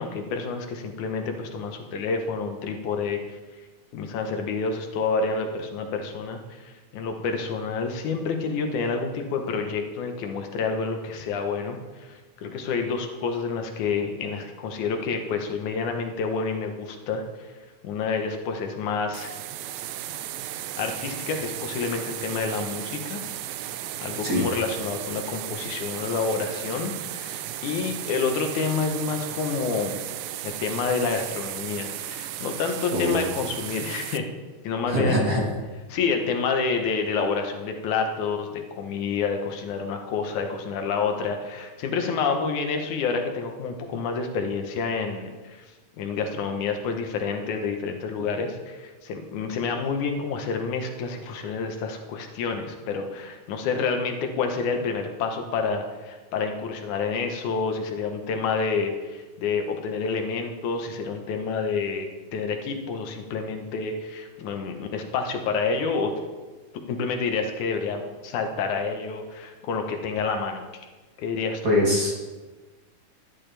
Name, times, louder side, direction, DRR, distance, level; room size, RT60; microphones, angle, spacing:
voice 1, 0.0-3.4 3.9-17.5 17.8-19.3 20.8-23.2 24.0-30.0 30.4-34.2 34.6-35.3 35.9-45.6 46.0-62.1 62.3-66.1 66.9-70.6 71.2-71.7, left 5 dB, 80° left, 4 dB, 2.5 m, -28 dB
sound 1, 19.1-34.2, right 12 dB, 80° right, 1.9 m, -35 dB
voice 2, 32.9-33.3 34.9-35.4 71.6-72.1, left 1 dB, 40° right, -3 dB, 1.9 m, -22 dB
12.5 x 10.5 x 3.3 m, 1.2 s
omnidirectional pair, 3.4 m